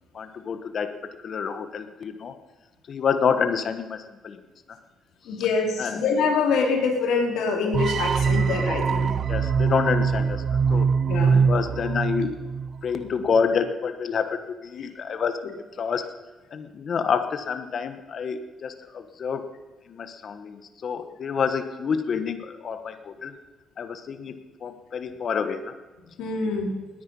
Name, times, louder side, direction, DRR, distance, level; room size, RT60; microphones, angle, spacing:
voice 1, 0.1-0.9 1.2-2.3 2.9-4.4 5.8-6.0 8.3-8.4 9.3-10.9 11.3-12.4 12.8-15.4 15.8-16.1 16.5-19.4 19.9-23.3 23.8-25.7, left 6 dB, 55° left, 9 dB, 1.3 m, -28 dB
voice 2, 5.3-9.1 11.1-11.4 14.8-14.9 26.2-26.7, left 4 dB, 85° left, 1 dB, 3.5 m, -25 dB
sound 1, 7.7-12.8, right 6 dB, 55° right, 0.8 m, -23 dB
19.0 x 10.0 x 5.5 m, 1.2 s
cardioid pair, 90°, 0 cm